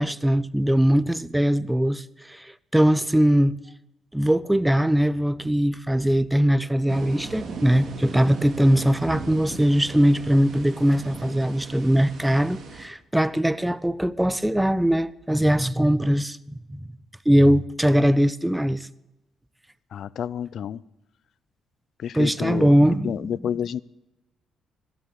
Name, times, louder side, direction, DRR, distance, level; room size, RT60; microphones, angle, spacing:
voice 1, 0.0-3.6 4.1-16.8 17.3-18.9 22.1-23.2, equal, 5° right, 0.5 m, -21 dB
sound 1, 6.9-12.8, right 4 dB, 55° right, 2.2 m, -38 dB
voice 2, 19.9-20.8 22.0-22.7 23.0-23.8, left 9 dB, 65° left, 0.4 m, -29 dB
14.0 x 8.5 x 8.1 m
cardioid pair, 90°, 0 cm